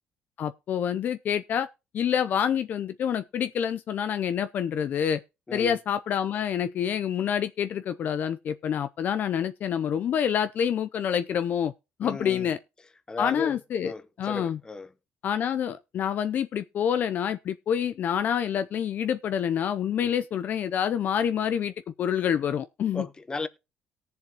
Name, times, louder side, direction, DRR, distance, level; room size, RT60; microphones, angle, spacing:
voice 1, 0.4-1.7 1.9-5.2 5.5-11.7 12.0-12.6 13.2-13.9 14.2-14.6 15.2-21.7 22.0-23.1, left 8 dB, 55° left, 0.6 m, -27 dB
voice 2, 5.5-5.8 12.0-12.5 13.1-14.9 20.0-20.1 22.9-23.5, left 3 dB, 20° left, 1.0 m, -35 dB
18.5 x 7.0 x 2.9 m
cardioid pair, 105°, 4 cm